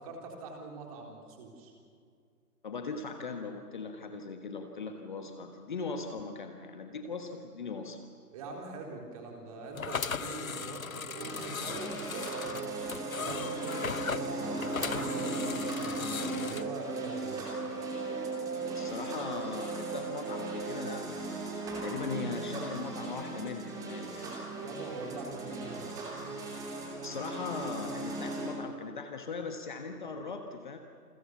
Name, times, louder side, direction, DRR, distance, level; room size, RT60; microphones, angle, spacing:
voice 1, 0.0-1.7 8.3-12.8 13.2-17.5 24.6-25.8, right 3 dB, 25° right, 1 dB, 3.8 m, -43 dB
voice 2, 2.6-8.0 18.7-21.5 21.8-24.3 27.0-30.8, left 4 dB, 30° left, 5 dB, 1.4 m, -39 dB
sound 1, 9.7-16.6, left 6 dB, 60° left, 0.9 m, -37 dB
sound 2, 11.2-28.5, right 2 dB, 5° right, 2.7 m, -39 dB
sound 3, 12.1-21.0, right 4 dB, 85° right, 1.1 m, -38 dB
28.5 x 23.0 x 7.2 m, 2.2 s
figure-of-eight pair, 140°, 47 cm